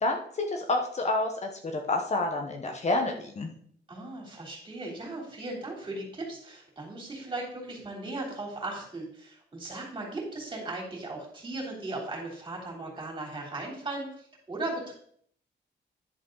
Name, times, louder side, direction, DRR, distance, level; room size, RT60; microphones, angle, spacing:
voice 1, 0.0-3.5, left 2 dB, 40° left, 4 dB, 1.1 m, -29 dB
voice 2, 3.9-14.9, right 2 dB, 25° right, -1 dB, 3.4 m, -37 dB
10.5 x 6.7 x 3.9 m, 0.62 s
wide cardioid pair, 150°, 18 cm